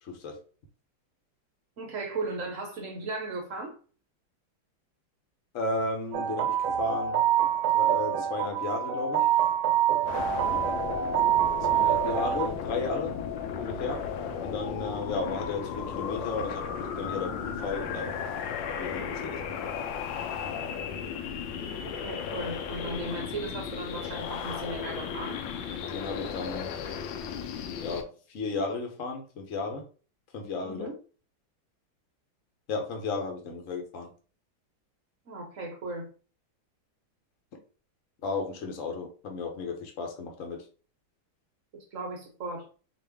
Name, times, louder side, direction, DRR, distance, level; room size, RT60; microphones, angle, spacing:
voice 1, 0.0-0.4 5.5-7.2 7.7-9.3 11.6-13.2 13.6-14.1 14.4-18.1 18.8-19.7 25.9-26.7 27.8-29.9 30.3-30.9 32.7-34.1 38.2-40.6, left 3 dB, 45° left, 1.2 m, -34 dB
voice 2, 1.8-3.7 10.3-10.7 21.8-25.4 30.6-30.9 35.3-36.1 41.7-42.7, right 2 dB, 55° right, 0.9 m, -37 dB
sound 1, 6.1-12.5, right 10 dB, 80° right, 1.4 m, -26 dB
sound 2, 10.0-28.0, left 7 dB, 75° left, 1.2 m, -35 dB
4.3 x 3.1 x 3.5 m
omnidirectional pair, 2.3 m